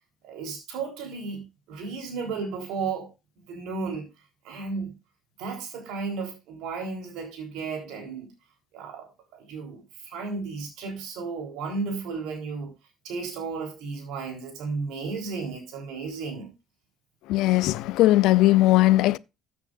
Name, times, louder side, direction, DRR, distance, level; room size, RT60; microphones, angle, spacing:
voice 1, 0.2-3.1 3.5-4.1 4.4-4.9 5.4-8.3 8.7-12.7 13.0-16.5, right 4 dB, 70° right, 3.7 m, -34 dB
voice 2, 17.3-19.2, left 16 dB, 70° left, 0.4 m, -19 dB
14.0 x 8.5 x 2.5 m
hypercardioid pair, 65°, 0 cm